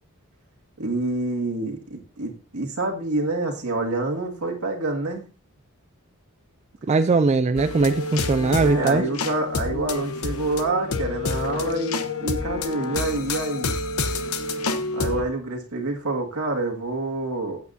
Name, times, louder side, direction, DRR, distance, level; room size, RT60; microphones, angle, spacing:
voice 1, 0.8-5.2 8.6-13.8 14.9-17.6, right 2 dB, 75° right, 2.1 m, -27 dB
voice 2, 6.9-9.0, right 3 dB, 30° right, 0.4 m, -20 dB
sound 1, 7.6-15.2, left 3 dB, 75° left, 1.0 m, -28 dB
14.0 x 8.4 x 2.7 m
head